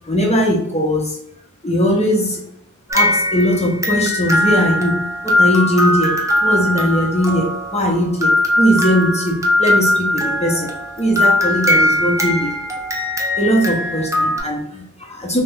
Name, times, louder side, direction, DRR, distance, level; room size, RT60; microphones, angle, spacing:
voice 1, 0.0-1.2 1.6-2.4 2.9-5.0 5.2-6.1 6.4-8.3 8.6-10.7 11.0-12.5 13.4-15.4, equal, 20° left, -1 dB, 0.7 m, -19 dB
sound 1, 2.9-14.4, left 1 dB, 10° right, 0.5 m, -19 dB
2.4 x 2.1 x 3.5 m, 0.71 s
wide cardioid pair, 75°, 31 cm